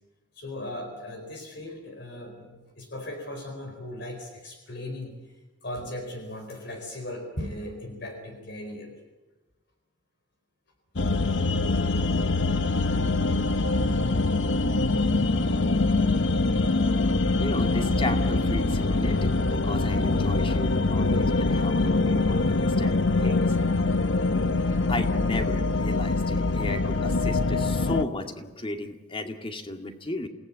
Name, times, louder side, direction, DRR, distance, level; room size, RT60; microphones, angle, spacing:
voice 1, 0.3-9.0 11.1-11.2, left 1 dB, 65° left, 4 dB, 4.3 m, -38 dB
sound 1, 11.0-28.0, left 3 dB, 85° left, 1.0 m, -24 dB
voice 2, 17.4-23.6 24.7-30.3, left 2 dB, 30° left, 5 dB, 2.2 m, -35 dB
28.5 x 18.0 x 8.7 m, 1.2 s
head